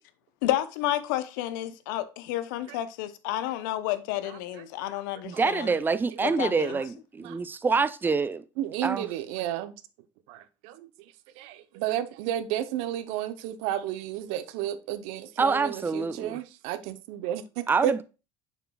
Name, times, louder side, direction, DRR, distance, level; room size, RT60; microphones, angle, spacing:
voice 1, 0.4-5.7 6.2-6.8, left 13 dB, 80° left, 0.7 m, -31 dB
voice 2, 4.2-4.7 5.3-5.4 6.1-6.2 6.6-6.8 7.2-7.4 8.6-9.8 10.3-18.0, right 12 dB, 70° right, 0.7 m, -33 dB
voice 3, 5.2-8.4 8.8-9.1 15.4-16.4 17.7-18.0, right 4 dB, 20° right, 0.5 m, -26 dB
7.0 x 6.0 x 2.3 m
supercardioid pair, 85°, 10 cm